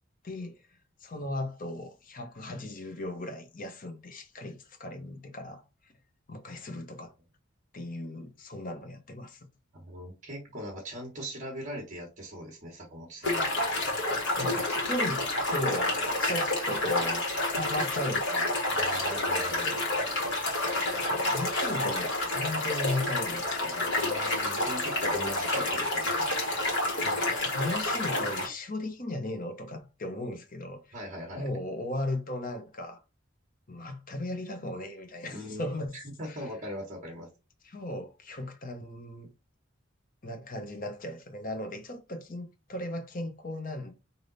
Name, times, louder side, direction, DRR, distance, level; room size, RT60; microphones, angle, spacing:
voice 1, 0.2-0.5 1.0-5.6 6.3-7.1 7.7-9.5 14.4-15.3 15.5-18.5 20.7-23.9 27.0-30.9 31.3-33.0 33.7-35.9 36.3-36.5 37.6-39.3 40.2-43.9, left 1 dB, 40° left, 0.8 m, -36 dB
voice 2, 9.7-13.5 18.7-19.8 23.9-26.3 30.9-31.5 35.3-37.3, equal, 35° right, 1.2 m, -40 dB
sound 1, 13.2-28.5, left 2 dB, 55° left, 1.6 m, -29 dB
3.4 x 2.7 x 4.0 m
head